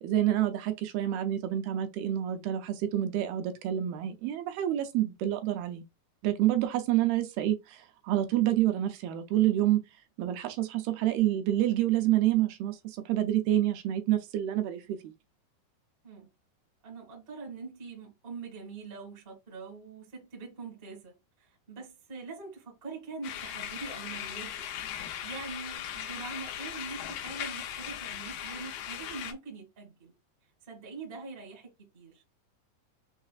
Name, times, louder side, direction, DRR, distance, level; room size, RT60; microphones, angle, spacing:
voice 1, 0.0-5.8 6.2-9.8 10.2-15.0, right 13 dB, 80° right, 2.4 m, -28 dB
voice 2, 16.8-24.6 24.9-30.1 30.6-32.2, right 4 dB, 45° right, 0.7 m, -43 dB
sound 1, 23.2-29.3, left 10 dB, 75° left, 2.2 m, -38 dB
6.5 x 2.4 x 2.4 m
omnidirectional pair, 4.5 m